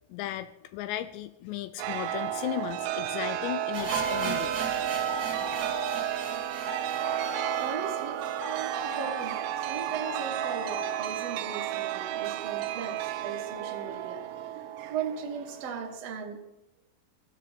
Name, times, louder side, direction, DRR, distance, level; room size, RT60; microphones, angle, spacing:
voice 1, 0.1-4.6, left 13 dB, 80° left, 12 dB, 2.7 m, -35 dB
Chime, 1.8-16.0, right 11 dB, 90° right, 3.2 m, -32 dB
sound 1, 3.3-12.1, left 3 dB, 60° left, 6.8 m, -42 dB
sound 2, 3.7-9.7 9.9-10.0 10.3-10.4 10.9-11.0, right 3 dB, 35° right, 1.4 m, -41 dB
voice 2, 7.6-14.3 14.5-16.4, right 7 dB, 55° right, 3 dB, 1.9 m, -38 dB
16.0 x 14.0 x 5.4 m, 0.89 s
omnidirectional pair, 5.4 m